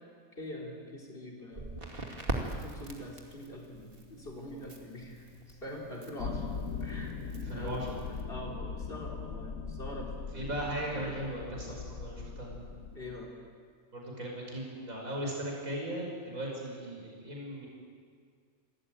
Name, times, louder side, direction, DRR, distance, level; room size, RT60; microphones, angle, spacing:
voice 1, 0.4-1.7 2.4-6.5 6.8-7.1 7.4-7.8 8.3-10.6 12.9-13.3, left 1 dB, 40° left, -2 dB, 4.6 m, -44 dB
Crackle, 1.5-8.2, right 2 dB, 40° right, 2.6 m, -42 dB
sound 1, 6.2-13.3, left 5 dB, 65° left, 1.5 m, -40 dB
voice 2, 7.5-8.1 10.3-12.5 13.9-17.7, right 1 dB, 70° right, -2 dB, 6.0 m, -37 dB
27.5 x 14.5 x 9.2 m, 2.1 s
omnidirectional pair, 1.5 m